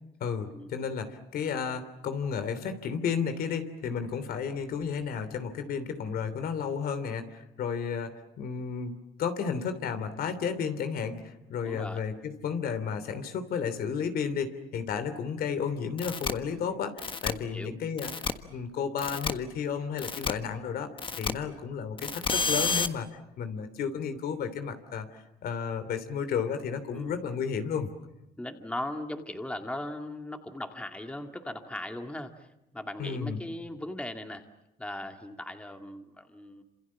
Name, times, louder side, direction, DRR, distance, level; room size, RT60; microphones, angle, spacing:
voice 1, 0.2-18.1 18.5-20.9 21.2-27.9 33.0-33.4, left 6 dB, 65° left, 10 dB, 3.0 m, -33 dB
voice 2, 11.6-12.0 17.3-17.8 26.9-27.2 28.4-34.4 34.8-36.6, left 1 dB, 5° left, 5 dB, 2.2 m, -38 dB
sound 1, 16.0-16.3 17.0-17.3 18.0-18.3 19.0-19.3 20.0-20.3 21.0-21.3 22.0-22.9, left 5 dB, 30° left, 1.5 m, -29 dB
28.0 x 27.0 x 7.3 m, 0.89 s
cardioid pair, 110°, 17 cm